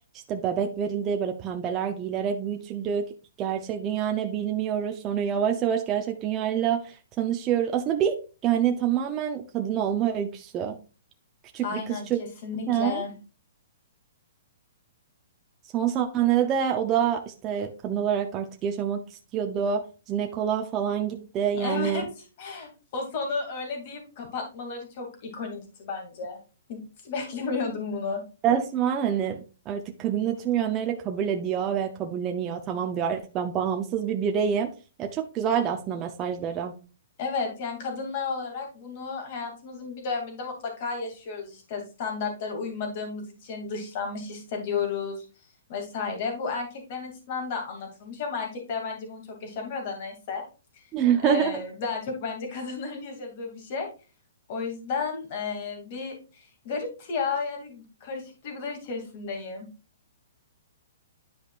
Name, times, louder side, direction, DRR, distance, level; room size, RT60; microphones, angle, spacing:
voice 1, 0.3-3.1 3.4-8.2 8.4-10.8 11.5-12.2 12.7-13.0 15.7-19.0 19.3-22.0 28.4-29.4 29.7-34.7 35.0-36.7 50.9-51.6, right 8 dB, 20° right, 4 dB, 0.6 m, -26 dB
voice 2, 11.6-13.1 21.6-22.1 22.4-26.4 26.7-28.2 37.2-45.3 45.7-50.4 51.2-53.9 54.5-59.7, left 4 dB, 40° left, 3 dB, 2.5 m, -33 dB
10.0 x 5.2 x 2.4 m, 0.34 s
hypercardioid pair, 160°, 0 cm